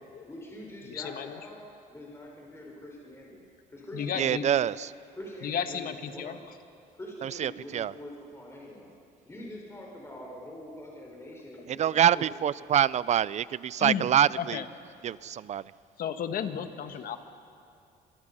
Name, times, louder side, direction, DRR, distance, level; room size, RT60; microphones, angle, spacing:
voice 1, 0.2-1.6 1.9-3.4 3.7-4.5 5.1-6.4 6.9-8.9 9.3-12.3 16.9-17.2, left 1 dB, 15° left, -2 dB, 5.1 m, -44 dB
voice 2, 0.8-1.4 3.9-4.5 5.4-6.4 13.8-14.7 16.0-17.2, left 8 dB, 60° left, 8 dB, 1.7 m, -33 dB
voice 3, 4.2-4.9 7.2-7.9 11.7-14.6 15.0-15.6, right 10 dB, 45° right, 20 dB, 0.5 m, -25 dB
26.5 x 23.0 x 5.6 m, 2.6 s
cardioid pair, 110°, 17 cm